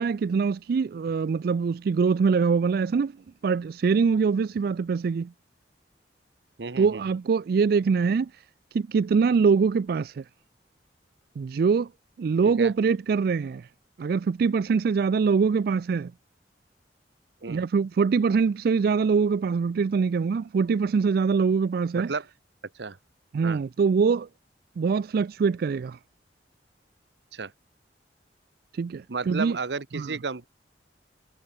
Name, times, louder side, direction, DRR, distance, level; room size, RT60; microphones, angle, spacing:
voice 1, 0.0-3.1 3.4-5.3 6.8-8.4 8.7-10.2 11.4-11.9 12.2-13.7 14.0-16.1 17.5-22.1 23.3-24.3 24.8-26.0 28.7-29.6 30.0-30.1, right 5 dB, 55° right, 0.3 m, -23 dB
voice 2, 6.6-7.0 12.4-12.7 17.4-17.6 21.9-22.3 22.7-23.0 23.4-23.6 27.3-27.5 29.1-30.5, right 4 dB, 75° right, 1.0 m, -32 dB
head